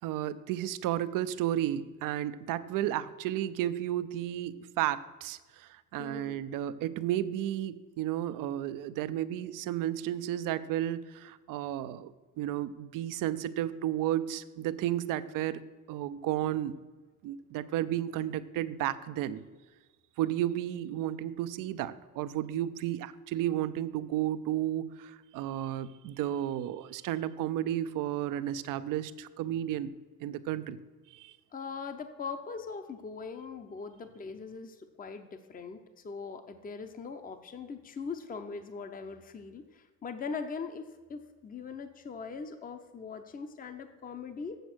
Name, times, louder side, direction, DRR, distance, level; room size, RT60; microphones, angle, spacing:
voice 1, 0.0-15.6 15.9-16.8 17.2-19.4 20.2-29.9 30.2-30.8 31.1-31.3, right 12 dB, 75° right, 14 dB, 0.6 m, -33 dB
voice 2, 6.0-6.4 31.5-35.8 36.0-44.6, left 5 dB, 25° left, 8 dB, 0.7 m, -41 dB
8.0 x 7.0 x 6.2 m, 1.3 s
cardioid pair, 115°, 32 cm